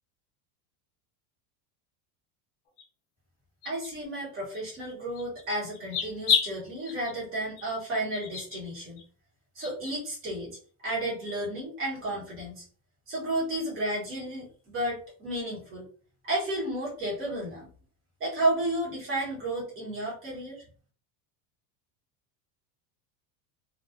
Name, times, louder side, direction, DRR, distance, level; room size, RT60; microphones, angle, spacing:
sound 1, 2.8-2.9 3.6-3.9 4.5-4.6 5.2-5.4 5.7-6.5 6.9-7.1 7.6-7.7 8.1-8.6 9.0-9.1 9.6-9.9, left 7 dB, 30° left, 0.4 m, -29 dB
voice 1, 3.6-9.1 9.5-12.6 13.1-15.9 16.2-17.7 18.2-20.6, right 1 dB, 25° right, -6 dB, 1.2 m, -32 dB
2.4 x 2.3 x 2.4 m, 0.43 s
cardioid pair, 160°, 50 cm